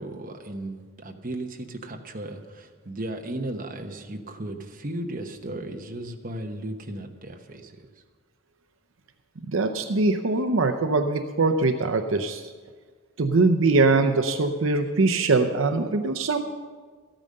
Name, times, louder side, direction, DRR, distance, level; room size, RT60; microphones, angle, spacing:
voice 1, 0.0-7.9, right 1 dB, 40° right, 4 dB, 1.0 m, -35 dB
voice 2, 9.5-12.5 13.2-16.4, right 3 dB, 70° right, 7 dB, 0.6 m, -22 dB
13.5 x 8.9 x 6.5 m, 1.5 s
head